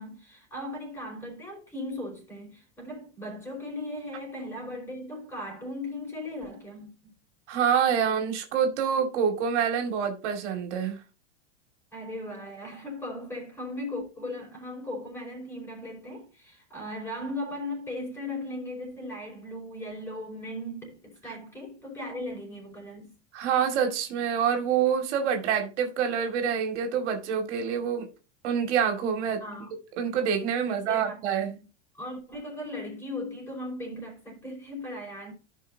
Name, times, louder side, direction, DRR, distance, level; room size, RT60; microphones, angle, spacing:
voice 1, 0.0-6.9 11.9-23.1 29.4-29.7 30.6-31.7 31.9-35.3, left 1 dB, 5° left, 5.0 m, -38 dB
voice 2, 7.5-11.0 23.3-28.1 28.4-29.4 30.0-31.5, right 7 dB, 75° right, 2.4 m, -26 dB
15.0 x 5.6 x 2.8 m
supercardioid pair, 155°, 35 cm